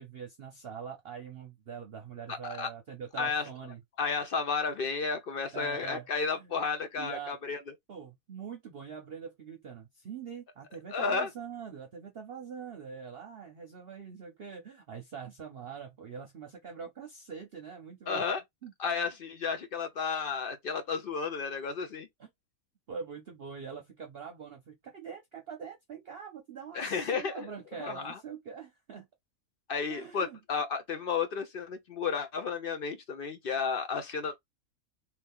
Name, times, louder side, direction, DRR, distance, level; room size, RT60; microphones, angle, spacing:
voice 1, 0.0-3.8 5.5-6.6 7.0-7.4 7.9-18.3 18.6-18.7 22.2-22.3 22.9-29.1 29.9-30.4, right 6 dB, 50° right, 0.8 m, -43 dB
voice 2, 2.3-2.7 3.2-3.4 4.0-7.6 10.9-11.3 18.1-18.4 18.8-22.1 26.7-27.5 27.8-28.2 29.7-34.4, left 5 dB, 60° left, 0.6 m, -32 dB
2.8 x 2.8 x 3.5 m
omnidirectional pair, 1.5 m